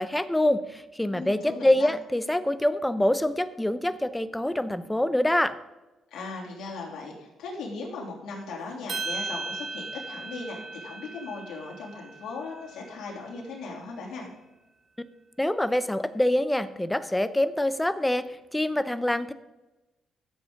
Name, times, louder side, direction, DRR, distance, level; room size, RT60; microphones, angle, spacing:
voice 1, 0.0-5.6 15.4-19.3, left 1 dB, 10° left, 13 dB, 0.6 m, -25 dB
voice 2, 1.1-1.9 6.1-14.3, left 3 dB, 80° left, -2 dB, 3.2 m, -38 dB
sound 1, 8.9-13.3, right 4 dB, 55° right, 2.9 m, -37 dB
14.0 x 7.7 x 3.8 m, 1.0 s
cardioid pair, 90°, 0 cm